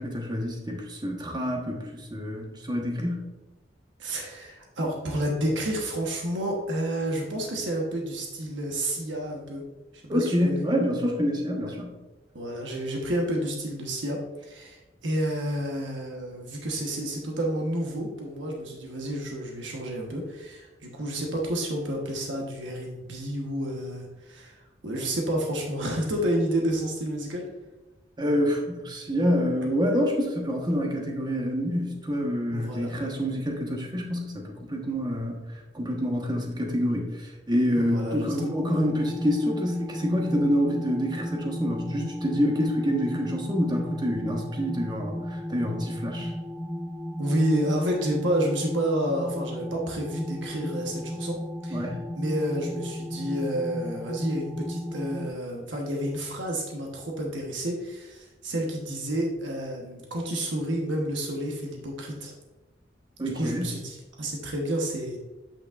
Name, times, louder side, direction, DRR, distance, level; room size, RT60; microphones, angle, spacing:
voice 1, 0.0-3.2 10.1-11.9 28.2-35.4 35.7-46.3 51.7-52.0 63.2-63.7, equal, 25° right, 0 dB, 1.1 m, -27 dB
voice 2, 4.0-9.6 10.0-10.7 11.7-11.8 12.3-24.5 24.8-27.4 29.6-29.7 32.5-32.9 37.8-38.3 40.3-40.4 47.2-51.4 51.6-51.8 52.1-62.3 63.4-65.2, right 1 dB, 85° right, 0 dB, 1.1 m, -30 dB
sound 1, 38.4-55.3, equal, ahead, 0.5 m, -35 dB
8.4 x 6.0 x 2.4 m, 1.1 s
head